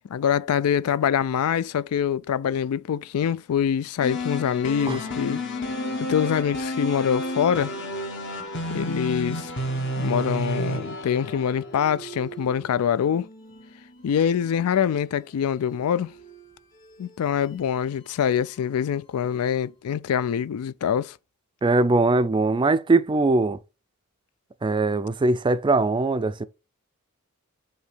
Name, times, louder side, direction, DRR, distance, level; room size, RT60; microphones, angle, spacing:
voice 1, 0.1-5.4 6.0-7.7 8.7-9.5 10.0-13.3 14.0-16.1 17.0-21.1, left 8 dB, 80° left, 0.3 m, -24 dB
sound 1, 4.0-12.2, left 1 dB, 55° left, 1.4 m, -31 dB
sound 2, 4.8-19.9, right 4 dB, 35° left, 2.1 m, -48 dB
voice 2, 21.6-23.6 24.6-26.4, right 3 dB, 20° right, 0.4 m, -21 dB
8.0 x 2.8 x 5.0 m
head